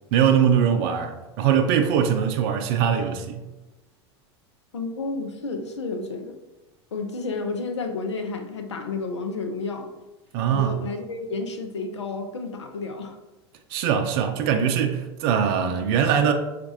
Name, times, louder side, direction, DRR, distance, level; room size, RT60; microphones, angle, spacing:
voice 1, 0.1-3.4 10.3-10.8 13.7-16.3, right 8 dB, 60° right, 0.5 m, -22 dB
voice 2, 4.7-6.4 6.9-9.9 10.5-13.2, left 3 dB, 90° left, 0.6 m, -31 dB
5.7 x 2.5 x 2.6 m
hypercardioid pair, 90°, 14 cm